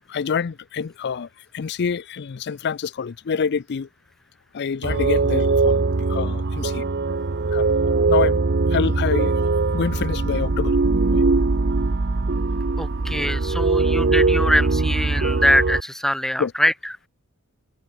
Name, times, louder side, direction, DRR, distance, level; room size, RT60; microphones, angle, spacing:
voice 1, 0.1-1.3 1.5-3.9 4.5-5.8 6.1-6.8 7.5-8.4 8.7-9.3 9.7-10.8 11.1-11.2 16.4-16.5, left 6 dB, 50° left, 0.4 m, -26 dB
sound 1, 4.8-15.8, right 3 dB, 50° right, 0.8 m, -21 dB
voice 2, 12.8-16.7, equal, ahead, 1.0 m, -22 dB
head